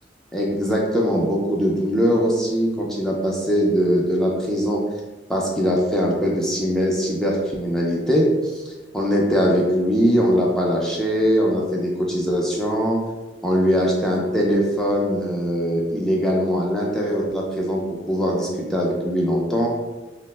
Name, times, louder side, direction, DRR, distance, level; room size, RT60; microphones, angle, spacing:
voice 1, 0.3-4.8 5.3-13.0 13.4-19.7, equal, 5° left, -3 dB, 0.4 m, -21 dB
2.7 x 2.1 x 3.1 m, 1.2 s
head